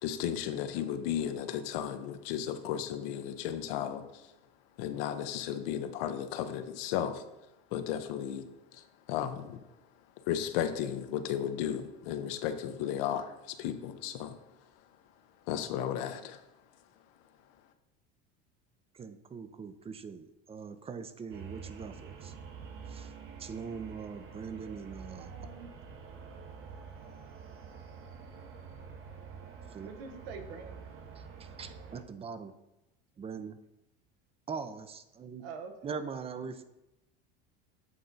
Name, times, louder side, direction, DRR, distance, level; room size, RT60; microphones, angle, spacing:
voice 1, 0.0-4.3 4.8-7.3 7.7-9.6 10.2-14.4 15.5-16.4, left 10 dB, 70° left, 9 dB, 0.7 m, -34 dB
voice 2, 18.9-22.3 22.9-23.1 23.4-25.4 29.7-29.9 31.2-32.5 33.2-33.6 34.5-35.4 35.8-36.6, right 6 dB, 20° right, 11 dB, 0.5 m, -42 dB
sound 1, 21.3-32.0, right 6 dB, 45° right, 0.9 m, -47 dB
voice 3, 25.1-25.7 29.8-31.0 35.4-36.0, right 5 dB, 75° right, 6 dB, 1.0 m, -46 dB
7.9 x 3.8 x 3.9 m, 0.93 s
supercardioid pair, 95°, 30 cm